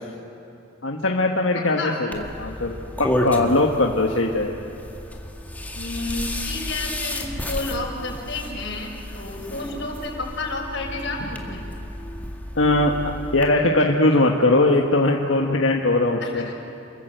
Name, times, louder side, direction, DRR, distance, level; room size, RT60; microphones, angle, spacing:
voice 1, 0.8-4.5 12.6-16.5, left 2 dB, 85° left, 1 dB, 1.5 m, -20 dB
voice 2, 1.5-2.0 5.7-11.7 16.2-16.6, left 2 dB, 65° left, -2 dB, 6.0 m, -31 dB
sound 1, 2.1-13.5, left 1 dB, 10° left, 2.1 m, -32 dB
29.0 x 21.5 x 8.1 m, 2.9 s
head